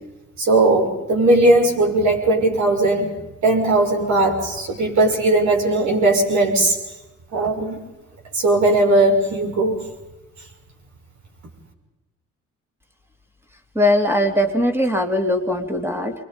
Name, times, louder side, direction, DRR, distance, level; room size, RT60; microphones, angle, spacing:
voice 1, 0.4-3.1 3.4-6.7 7.3-7.8 8.3-9.8, right 2 dB, 70° right, 1 dB, 6.7 m, -18 dB
voice 2, 13.7-16.1, left 1 dB, 10° right, 5 dB, 2.9 m, -20 dB
27.5 x 23.5 x 5.2 m, 1.0 s
cardioid pair, 90°, 30 cm